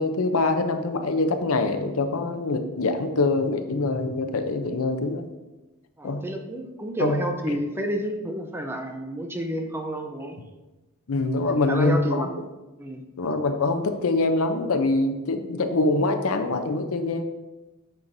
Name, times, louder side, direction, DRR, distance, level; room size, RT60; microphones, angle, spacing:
voice 1, 0.0-5.3 6.0-6.3 7.0-7.2 7.5-7.6 11.1-12.5 13.2-17.2, left 2 dB, 65° left, 7 dB, 0.6 m, -24 dB
voice 2, 6.0-10.4 11.3-12.3 12.8-13.0, equal, 10° right, 4 dB, 0.5 m, -30 dB
8.7 x 5.6 x 2.6 m, 1.1 s
head